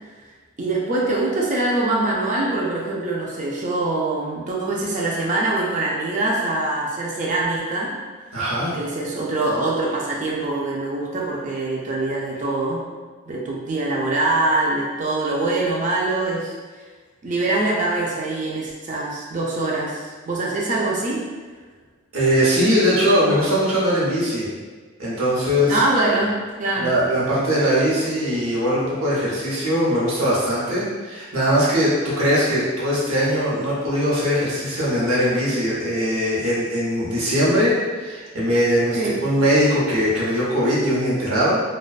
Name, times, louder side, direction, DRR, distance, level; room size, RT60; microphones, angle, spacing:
voice 1, 0.6-7.9 8.7-12.8 13.3-16.5 17.2-21.2 25.7-27.0 38.9-39.2, right 2 dB, 35° right, -3 dB, 0.4 m, -23 dB
voice 2, 8.3-8.7 22.1-24.5 25.0-25.8 26.0-26.2 26.8-41.6, equal, 85° right, -7 dB, 0.8 m, -20 dB
2.4 x 2.2 x 2.3 m, 1.4 s
head